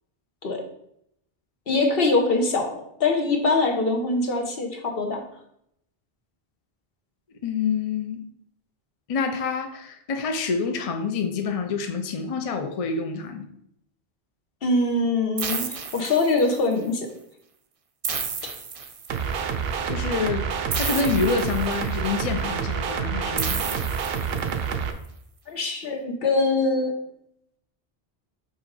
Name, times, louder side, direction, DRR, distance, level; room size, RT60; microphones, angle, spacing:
voice 1, 1.7-5.2 14.6-17.1 25.5-26.9, left 3 dB, 65° left, 3 dB, 1.2 m, -23 dB
voice 2, 7.4-8.2 9.1-13.5 19.9-20.5 20.8-23.9, left 5 dB, 45° left, 5 dB, 0.5 m, -27 dB
sound 1, 15.4-16.7 18.0-19.4 20.7-22.1 23.4-24.7, right 5 dB, 40° right, 0.5 m, -32 dB
sound 2, 19.1-24.9, right 6 dB, 70° right, 0.8 m, -28 dB
5.7 x 3.7 x 4.7 m, 0.74 s
omnidirectional pair, 1.1 m